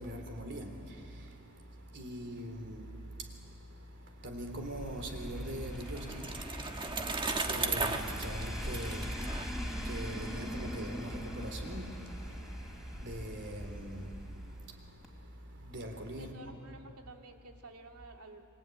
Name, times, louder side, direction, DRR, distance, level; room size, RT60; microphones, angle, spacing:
voice 1, 0.0-16.6, right 1 dB, 55° right, 3.4 m, -43 dB
sound 1, 4.4-14.8 15.0-15.1, equal, ahead, 3.3 m, -41 dB
Bicycle, 5.2-10.3, right 3 dB, 20° right, 1.4 m, -36 dB
voice 2, 16.2-18.5, right 2 dB, 85° right, 2.4 m, -52 dB
27.0 x 23.5 x 9.2 m
head